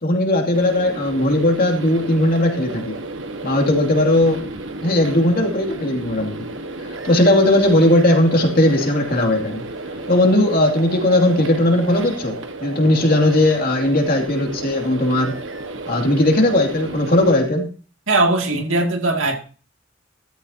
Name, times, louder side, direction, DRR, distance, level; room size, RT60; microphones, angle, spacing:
voice 1, 0.0-3.0 3.4-4.5 4.8-6.3 7.0-9.6 10.1-15.3 15.9-17.7, left 1 dB, 50° left, 2.7 m, -17 dB
sound 1, 0.5-17.4, right 2 dB, 70° right, 1.5 m, -33 dB
voice 2, 18.1-19.4, right 2 dB, 90° right, 2.4 m, -19 dB
13.5 x 13.0 x 2.8 m
head